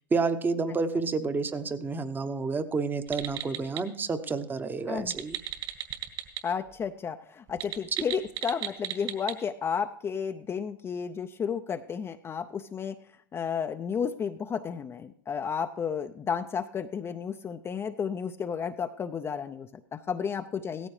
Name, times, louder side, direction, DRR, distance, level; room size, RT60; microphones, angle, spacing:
voice 1, 0.1-5.4, right 4 dB, 15° right, 12 dB, 0.8 m, -29 dB
sound 1, 3.1-3.8 5.0-6.4 6.7-6.8 7.5-9.4, right 11 dB, 50° right, 1.9 m, -35 dB
voice 2, 6.4-13.0 13.3-20.9, left 7 dB, 25° left, 7 dB, 0.5 m, -32 dB
16.5 x 14.0 x 3.2 m, 0.63 s
hypercardioid pair, 100°, 11 cm